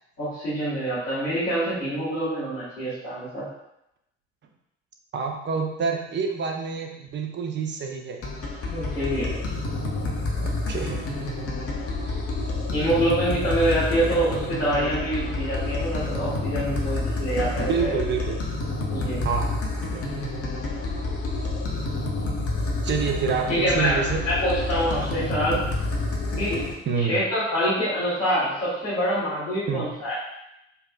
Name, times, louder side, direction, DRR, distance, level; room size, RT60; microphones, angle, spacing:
voice 1, 0.2-3.5 8.7-9.3 12.0-12.1 12.7-18.0 18.9-19.2 23.5-24.0 24.2-25.6 26.4-26.7 27.0-30.2, right 1 dB, 90° left, -17 dB, 1.4 m, -25 dB
voice 2, 5.1-8.2 10.4-11.0 17.7-18.4 19.2-19.6 19.9-20.3 22.8-24.2 26.9-27.2 29.7-29.9, right 5 dB, 30° right, 2 dB, 0.6 m, -27 dB
sound 1, 8.2-26.7, left 2 dB, 40° left, 0.7 m, -29 dB
4.0 x 2.3 x 2.3 m, 0.83 s
figure-of-eight pair, 55°, 37 cm